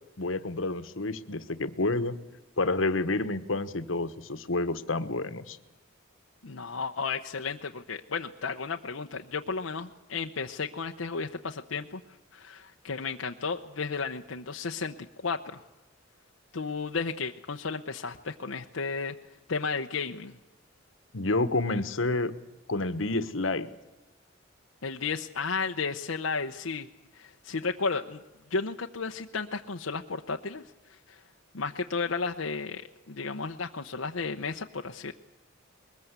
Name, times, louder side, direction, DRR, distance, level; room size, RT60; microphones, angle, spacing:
voice 1, 0.2-2.1 2.6-5.6 21.1-22.3 22.7-23.7, left 2 dB, 70° left, 11 dB, 1.3 m, -29 dB
voice 2, 6.4-15.6 16.5-20.4 24.8-26.9 27.1-28.2 28.5-31.2 31.5-35.1, left 4 dB, 90° left, 3 dB, 0.9 m, -33 dB
22.0 x 20.5 x 8.2 m, 1.0 s
head